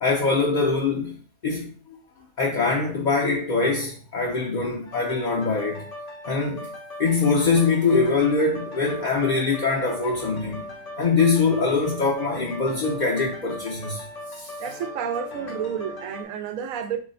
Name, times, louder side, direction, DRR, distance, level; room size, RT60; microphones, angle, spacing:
voice 1, 0.0-1.2 1.4-1.7 2.4-5.8 6.3-6.7 7.0-10.6 11.0-14.0 14.4-14.5, left 4 dB, 45° left, 0.7 m, -23 dB
sound 1, 4.9-16.2, left 1 dB, 65° left, 1.2 m, -38 dB
voice 2, 14.6-17.0, right 8 dB, 85° right, 1.0 m, -30 dB
3.8 x 3.2 x 4.0 m
omnidirectional pair, 1.4 m